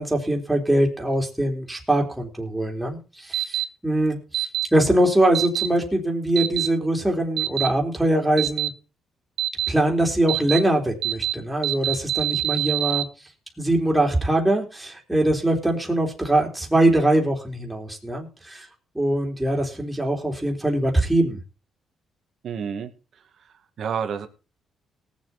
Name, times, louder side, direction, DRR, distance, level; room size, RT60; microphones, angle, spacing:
voice 1, 0.0-8.7 9.7-13.1 13.6-18.7 19.0-21.4, right 1 dB, 5° right, 0 dB, 3.7 m, -22 dB
sound 1, 3.3-3.6 4.3-4.7 5.3-5.7 6.4-6.7 7.4-7.7 8.4-8.7 9.4-9.7 10.3-10.6 11.0-11.3 11.6-13.0, right 15 dB, 75° right, 0.5 m, -24 dB
voice 2, 22.4-22.9 23.8-24.3, right 7 dB, 60° right, 7 dB, 2.1 m, -28 dB
18.5 x 7.4 x 4.3 m, 0.32 s
cardioid pair, 90°, 0 cm